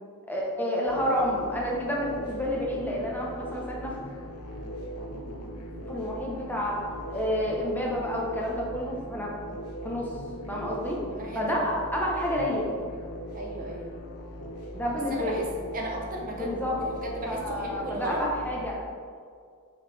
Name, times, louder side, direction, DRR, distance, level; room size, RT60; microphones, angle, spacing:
voice 1, 0.3-3.9 5.9-6.8 7.1-9.3 9.8-10.1 10.5-11.0 11.3-12.7 14.7-15.4 16.3-16.8 17.3-18.8, equal, 10° left, -3 dB, 0.9 m, -29 dB
sound 1, 0.9-18.7, equal, 90° left, 0.7 m, -40 dB
voice 2, 10.7-11.7 13.3-14.0 15.1-15.5 15.7-18.3, right 1 dB, 40° right, 0 dB, 0.7 m, -36 dB
5.7 x 5.5 x 3.3 m, 2.1 s
head